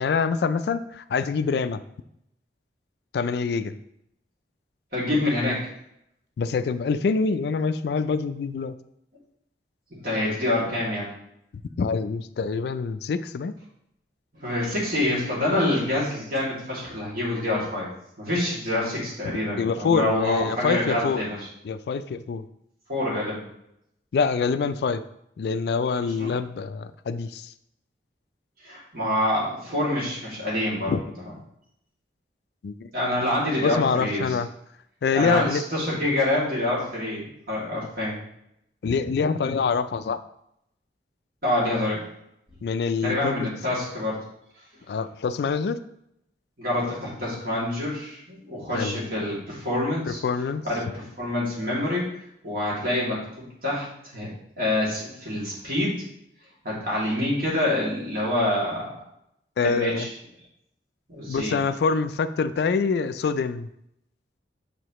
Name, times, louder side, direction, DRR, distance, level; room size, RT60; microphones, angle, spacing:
voice 1, 0.0-1.8 3.1-3.7 6.4-8.8 11.5-13.6 19.6-21.2 21.6-22.5 24.1-25.0 25.4-27.5 30.9-31.0 32.6-32.9 33.6-34.5 35.0-35.6 38.8-40.2 42.6-43.5 44.9-45.8 48.7-49.0 50.1-50.6 59.6-60.1 61.3-63.7, left 5 dB, 60° left, 12 dB, 0.3 m, -25 dB
voice 2, 4.9-5.7 10.0-11.1 14.4-17.9 18.2-21.5 22.9-23.4 26.2-26.3 28.6-30.9 32.9-34.3 35.1-38.2 41.4-42.0 43.0-44.2 46.6-50.2 50.6-52.1 52.4-53.2 53.6-54.3 54.6-56.0 56.6-58.9 59.6-60.1 61.1-61.6, left 1 dB, 50° right, -6 dB, 2.4 m, -26 dB
6.6 x 4.8 x 3.0 m, 0.77 s
head